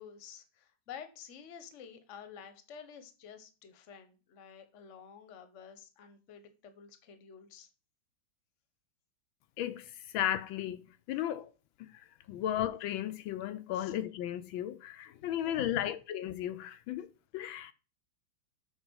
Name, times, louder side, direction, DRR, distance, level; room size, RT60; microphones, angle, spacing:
voice 1, 0.0-7.7 12.3-12.4 13.7-13.9 15.2-15.7, left 7 dB, 45° left, 1.1 m, -50 dB
voice 2, 9.6-11.5 11.8-17.1 17.3-17.7, left 11 dB, 80° left, 1.3 m, -35 dB
8.0 x 4.3 x 6.2 m
omnidirectional pair, 2.2 m